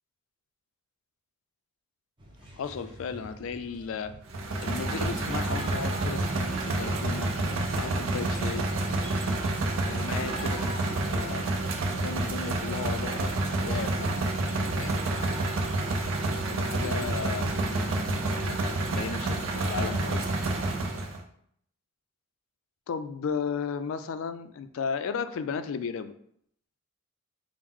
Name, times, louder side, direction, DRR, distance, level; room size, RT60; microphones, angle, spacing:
sound 1, 2.2-20.5, right 1 dB, 20° right, 0.6 m, -46 dB
voice 1, 2.5-4.1 4.6-7.3 7.8-8.7 9.9-11.7 11.9-13.3 13.6-14.3 14.8-15.0 16.5-20.3 22.9-26.1, left 6 dB, 70° left, 11 dB, 0.3 m, -35 dB
sound 2, 4.3-21.2, right 2 dB, 70° right, 0.6 m, -29 dB
4.5 x 2.0 x 3.6 m, 0.68 s
head